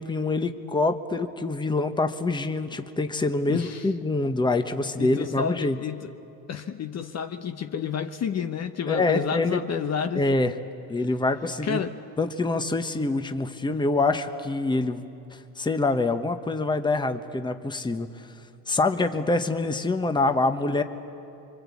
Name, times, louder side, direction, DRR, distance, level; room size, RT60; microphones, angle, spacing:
voice 1, 0.0-5.8 8.9-9.6 10.1-10.6 10.9-11.8 12.2-15.0 15.3-18.3 18.7-20.8, left 2 dB, 10° left, 7 dB, 1.2 m, -25 dB
voice 2, 3.5-3.9 5.0-6.1 6.5-10.2 11.6-11.9 13.7-13.8, left 7 dB, 35° left, 7 dB, 1.0 m, -30 dB
27.0 x 24.5 x 8.5 m, 2.7 s
cardioid pair, 115°, 43 cm